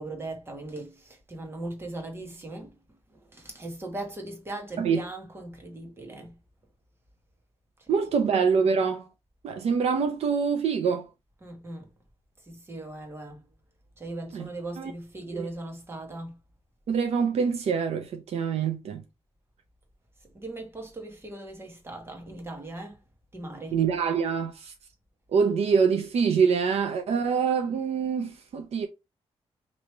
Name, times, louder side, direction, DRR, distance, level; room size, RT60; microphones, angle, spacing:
voice 1, 0.0-2.7 3.1-6.4 11.4-11.9 12.4-13.4 14.0-16.4 20.3-23.0 23.3-23.8, right 2 dB, 20° right, 1.2 m, -39 dB
voice 2, 7.9-9.1 9.4-11.1 14.3-14.5 14.8-14.9 15.3-15.5 16.9-19.0 23.7-24.7 25.3-28.9, right 6 dB, 70° right, 0.6 m, -25 dB
3.0 x 2.7 x 4.4 m
wide cardioid pair, 140°, 11 cm